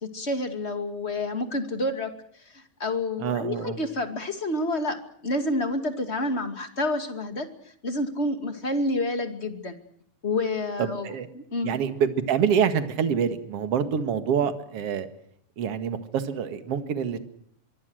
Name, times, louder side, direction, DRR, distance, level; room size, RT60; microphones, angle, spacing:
voice 1, 0.0-2.1 2.5-5.0 5.2-7.5 7.8-9.8 10.2-11.7, left 2 dB, 25° left, 7 dB, 2.4 m, -29 dB
voice 2, 3.2-3.8 10.8-11.3 11.6-15.1 15.6-17.2, right 7 dB, 55° right, 9 dB, 2.7 m, -26 dB
24.5 x 23.5 x 6.4 m, 0.65 s
omnidirectional pair, 3.3 m